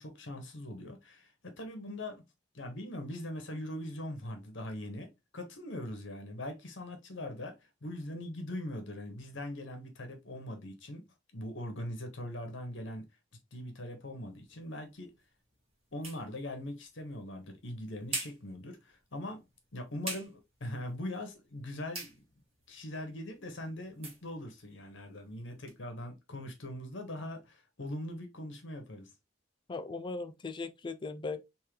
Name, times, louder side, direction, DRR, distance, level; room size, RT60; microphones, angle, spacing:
voice 1, 0.0-2.2 2.5-7.6 7.8-11.0 11.3-13.1 13.5-15.1 15.9-19.4 19.7-22.2 22.7-29.1, left 1 dB, 75° left, 1.1 m, -41 dB
sound 1, 14.3-25.8, right 2 dB, 30° right, 1.5 m, -47 dB
voice 2, 29.7-31.4, left 3 dB, 25° left, 0.4 m, -38 dB
3.6 x 2.8 x 3.1 m
head